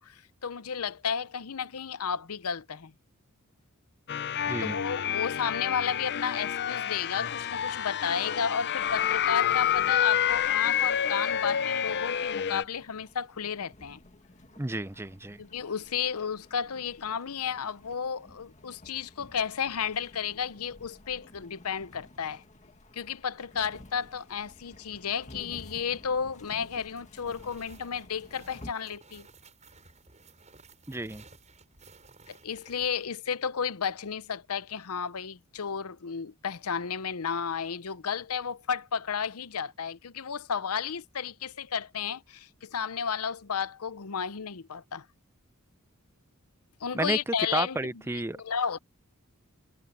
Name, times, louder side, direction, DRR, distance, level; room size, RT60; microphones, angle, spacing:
voice 1, 0.0-2.9 4.6-14.0 15.4-22.4 22.9-29.3 32.3-45.1 46.8-47.8 48.3-48.8, left 7 dB, 80° left, 0.8 m, -33 dB
sound 1, 4.1-12.6, left 9 dB, 50° left, 0.6 m, -28 dB
voice 2, 4.5-4.8 14.6-15.4 30.9-31.2 46.9-47.2 47.5-48.4, right 2 dB, 10° right, 0.6 m, -31 dB
sound 2, 8.8-28.7, left 1 dB, 35° left, 2.0 m, -53 dB
sound 3, 27.2-33.1, right 4 dB, 35° right, 7.6 m, -55 dB
head